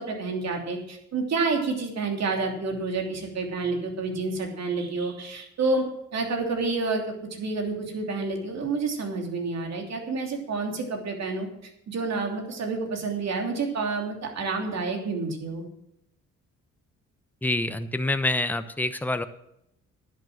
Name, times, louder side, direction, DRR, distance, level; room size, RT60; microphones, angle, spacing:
voice 1, 0.0-5.9 6.1-11.5 11.9-15.6, right 3 dB, 60° right, 3 dB, 3.1 m, -29 dB
voice 2, 17.4-19.3, left 2 dB, 5° left, 10 dB, 0.9 m, -26 dB
11.0 x 8.0 x 7.7 m, 0.79 s
cardioid pair, 90°, 30 cm